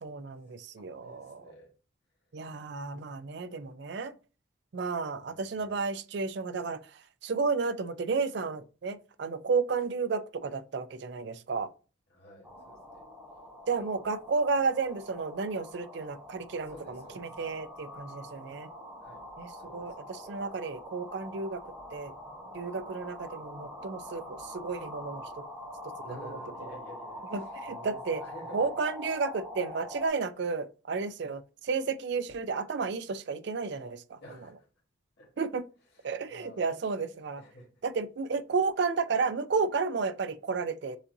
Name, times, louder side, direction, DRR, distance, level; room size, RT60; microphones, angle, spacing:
voice 1, 0.0-1.4 2.3-4.1 4.7-6.8 7.2-11.7 13.7-18.7 19.4-19.9 20.3-22.1 22.5-25.2 26.0-26.1 27.3-28.2 28.5-34.2 35.4-35.6 36.0-37.4 37.8-41.0, right 4 dB, 55° right, 0.4 m, -32 dB
voice 2, 1.0-1.7 5.2-5.8 12.1-13.1 16.6-17.3 19.0-19.3 19.5-20.1 26.0-28.7 34.2-34.7 35.2-35.4 35.9-36.8 37.3-37.7, equal, 55° left, 1.5 m, -51 dB
sound 1, 12.4-30.1, left 1 dB, 10° right, 1.2 m, -44 dB
7.0 x 2.6 x 2.6 m
head